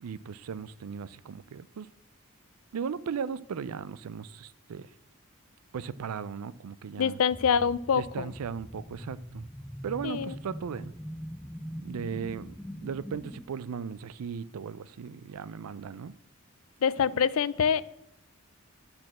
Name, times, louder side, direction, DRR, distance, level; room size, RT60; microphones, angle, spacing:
voice 1, 0.0-1.9 2.7-4.9 5.7-7.2 7.9-9.5 9.8-10.9 11.8-16.1, right 6 dB, 85° right, 0.4 m, -37 dB
voice 2, 7.0-8.3 10.0-10.4 16.8-17.8, left 7 dB, 70° left, 0.4 m, -25 dB
sound 1, 7.3-13.4, equal, ahead, 0.3 m, -42 dB
10.5 x 4.4 x 7.4 m
head